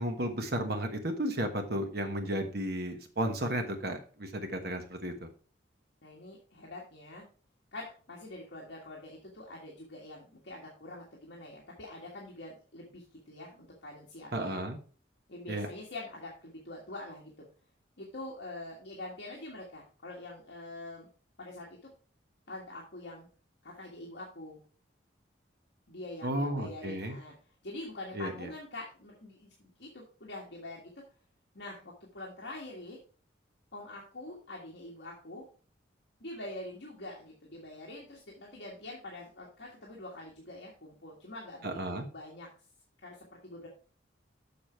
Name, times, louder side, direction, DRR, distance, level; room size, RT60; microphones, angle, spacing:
voice 1, 0.0-5.3 14.3-14.8 15.5-15.7 26.2-27.2 28.1-28.5 41.6-42.1, right 1 dB, 55° right, 5 dB, 1.3 m, -33 dB
voice 2, 6.0-7.2 7.7-14.6 15.3-17.4 18.0-21.1 21.4-21.8 22.5-23.3 23.6-24.6 25.9-27.3 27.6-30.9 31.5-33.0 33.7-35.4 36.2-42.5 43.0-43.7, left 2 dB, 65° left, -3 dB, 1.7 m, -45 dB
7.0 x 6.1 x 4.5 m, 0.39 s
head